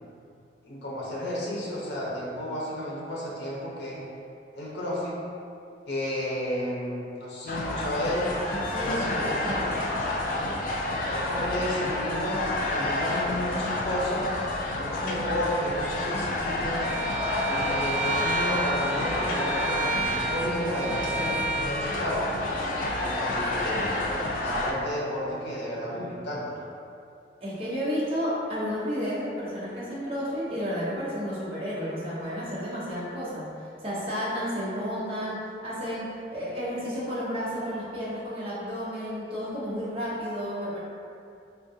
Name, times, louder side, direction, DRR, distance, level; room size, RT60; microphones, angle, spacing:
voice 1, 0.6-4.0 4.5-5.2 5.9-8.3 8.8-9.7 11.1-14.3 14.7-16.9 17.4-22.3 23.0-24.0 24.4-26.6, equal, 65° left, -5 dB, 0.7 m, -32 dB
sound 1, 7.5-24.7, left 2 dB, 45° left, 0.3 m, -29 dB
voice 2, 8.7-9.7 27.4-40.8, equal, 30° right, -8 dB, 0.7 m, -32 dB
Bowed string instrument, 16.8-21.7, right 3 dB, 10° left, 1.1 m, -31 dB
3.5 x 2.3 x 2.7 m, 2.5 s
head